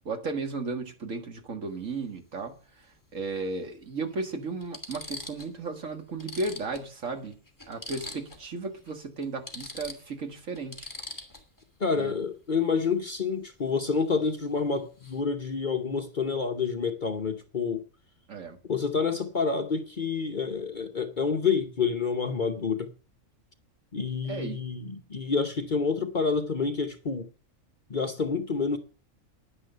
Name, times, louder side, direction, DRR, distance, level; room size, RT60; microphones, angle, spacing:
voice 1, 0.1-2.6 3.1-7.4 7.7-10.9 11.9-12.2 18.3-18.6 24.3-24.6, right 3 dB, 65° right, 2.0 m, -34 dB
sound 1, 1.7-1.9 3.3-3.4 4.1-4.2 4.6-5.6 5.9-6.0 6.2-8.5 8.8-8.9 9.2-11.6 14.2-14.5 14.7-15.2, left 2 dB, 15° left, 1.9 m, -43 dB
voice 2, 11.8-17.8 18.7-22.9 23.9-27.3 27.9-28.8, left 5 dB, 40° left, 0.9 m, -28 dB
10.0 x 10.0 x 6.7 m
omnidirectional pair, 1.5 m